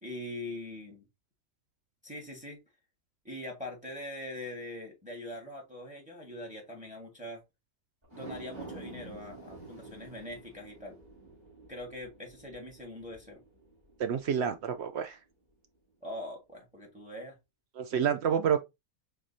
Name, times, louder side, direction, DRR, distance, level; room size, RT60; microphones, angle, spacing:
voice 1, 0.0-1.0 2.0-2.6 3.2-7.4 8.1-11.0 11.7-13.4 16.0-17.4, left 1 dB, 5° right, 1.2 m, -42 dB
sound 1, 8.0-14.5 14.9-15.0, right 3 dB, 35° right, 2.7 m, -49 dB
voice 2, 14.0-15.2 17.8-18.6, right 8 dB, 65° right, 0.7 m, -28 dB
4.9 x 3.7 x 2.6 m
omnidirectional pair, 1.5 m